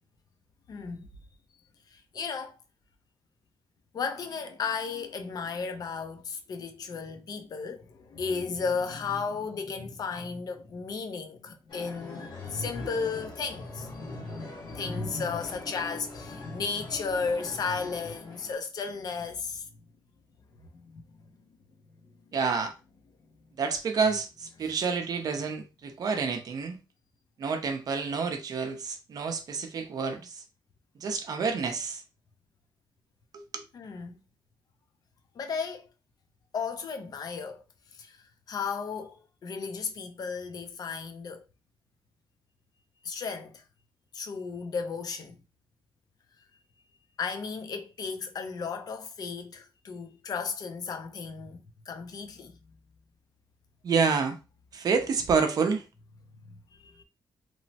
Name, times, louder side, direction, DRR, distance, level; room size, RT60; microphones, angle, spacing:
voice 1, 0.7-1.1 1.9-2.6 3.9-19.7 20.6-21.0 24.6-24.8 33.7-34.2 35.4-35.9 36.5-37.6 37.9-38.2 38.5-41.4 43.0-43.6 44.1-45.3 47.2-51.6 51.9-52.5 56.5-57.0, left 5 dB, 50° left, 0.5 m, -34 dB
sound 1, 11.7-18.5, left 2 dB, 75° left, 1.1 m, -44 dB
voice 2, 22.3-22.7 23.6-26.8 27.4-30.4 31.0-32.0 33.3-33.6 53.8-54.4 54.7-55.9, right 5 dB, 45° right, 0.5 m, -28 dB
2.9 x 2.0 x 2.7 m
wide cardioid pair, 160°, 9 cm